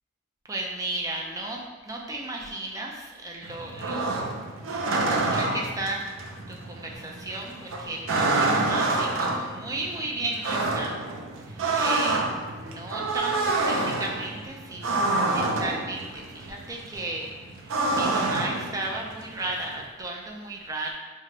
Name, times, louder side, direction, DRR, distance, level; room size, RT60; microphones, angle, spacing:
voice 1, 0.5-1.6 1.9-4.1 4.9-6.0 6.5-11.0 11.5-12.2 12.6-17.3 17.6-20.9, right 2 dB, 15° right, -1 dB, 0.4 m, -34 dB
sound 1, 3.4-19.8, right 2 dB, 85° right, 0.5 m, -28 dB
4.9 x 2.2 x 3.2 m, 1.3 s
head